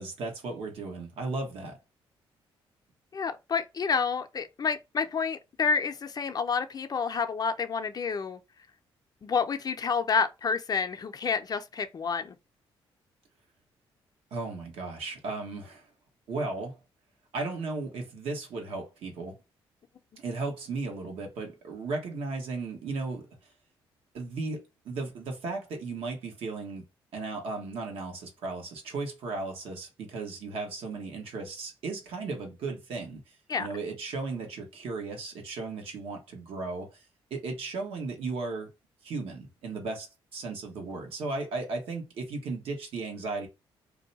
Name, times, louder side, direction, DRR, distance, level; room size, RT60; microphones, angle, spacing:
voice 1, 0.0-1.8 14.3-15.8 16.3-16.8 17.3-19.3 20.2-23.3 24.1-26.8 27.1-33.2 33.6-37.0 37.3-38.7 39.0-40.1 40.3-43.5, right 3 dB, 75° right, 1.2 m, -35 dB
voice 2, 3.1-8.4 9.2-12.3 33.5-33.7, left 5 dB, 40° left, 0.5 m, -29 dB
2.7 x 2.2 x 4.0 m
cardioid pair, 80°, 10 cm